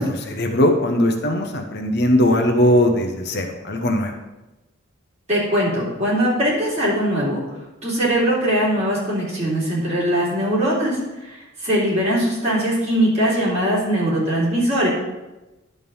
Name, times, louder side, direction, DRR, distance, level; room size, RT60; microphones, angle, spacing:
voice 1, 0.0-4.1, left 1 dB, 50° left, 4 dB, 0.9 m, -19 dB
voice 2, 5.3-7.4 7.8-11.4 11.6-14.9, equal, 35° right, -7 dB, 3.5 m, -21 dB
11.0 x 3.7 x 7.0 m, 1.0 s
head